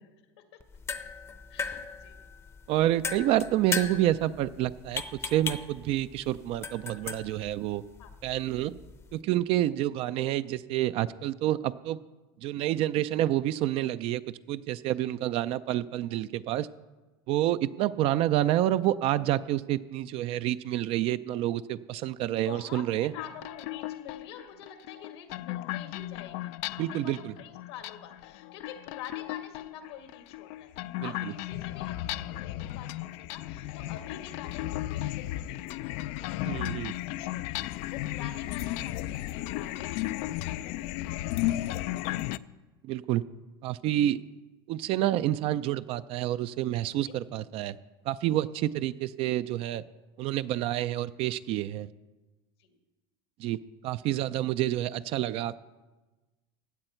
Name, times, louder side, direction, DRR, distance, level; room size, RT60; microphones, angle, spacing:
sound 1, 0.6-9.2, left 5 dB, 20° left, 0.7 m, -38 dB
voice 1, 1.5-2.2 8.0-8.2 15.0-15.1 18.5-18.6 22.3-30.7 31.0-36.2 36.5-36.6 36.9-41.7 47.1-47.2 48.5-48.7 52.6-52.7, left 8 dB, 80° left, 5 dB, 1.9 m, -47 dB
voice 2, 2.7-5.0 5.3-7.8 8.2-8.7 9.1-12.0 12.4-14.2 14.5-16.7 17.3-23.1 26.8-27.3 31.0-31.1 36.5-36.9 42.8-43.2 43.6-44.2 44.7-47.7 48.1-49.8 50.2-51.9 53.4-53.6 53.8-55.6, right 13 dB, 45° right, 13 dB, 0.4 m, -28 dB
sound 2, 23.1-42.4, left 15 dB, 60° left, 0.4 m, -35 dB
16.0 x 8.9 x 4.4 m, 1.2 s
supercardioid pair, 120°, 13 cm